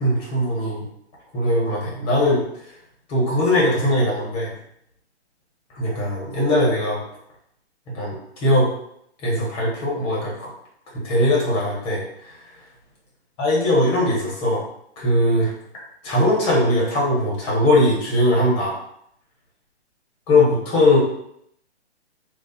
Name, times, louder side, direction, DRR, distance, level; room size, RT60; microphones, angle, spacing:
voice 1, 0.0-0.8 1.3-2.4 3.1-4.5 5.7-7.0 7.9-8.7 9.2-10.5 11.0-12.4 13.4-14.6 15.0-15.5 16.0-18.8 20.3-21.0, left 1 dB, 15° left, -4 dB, 1.1 m, -20 dB
3.3 x 2.3 x 4.2 m, 0.71 s
hypercardioid pair, 155°, 34 cm